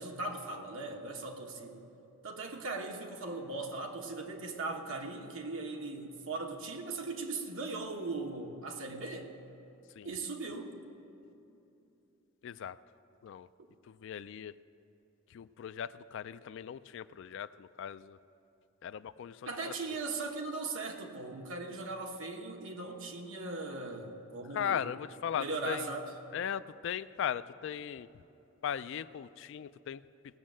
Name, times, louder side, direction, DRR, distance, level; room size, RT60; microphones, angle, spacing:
voice 1, 0.0-1.8 2.2-9.3 10.0-10.8 19.5-25.0 25.3-26.1, right 3 dB, 70° right, 2 dB, 1.2 m, -39 dB
voice 2, 12.4-12.8 13.2-13.5 13.9-14.5 15.3-18.2 18.8-19.7 24.5-25.9 26.3-28.1 28.6-30.0, left 8 dB, 60° left, 16 dB, 0.3 m, -38 dB
18.0 x 6.3 x 7.5 m, 2.8 s
head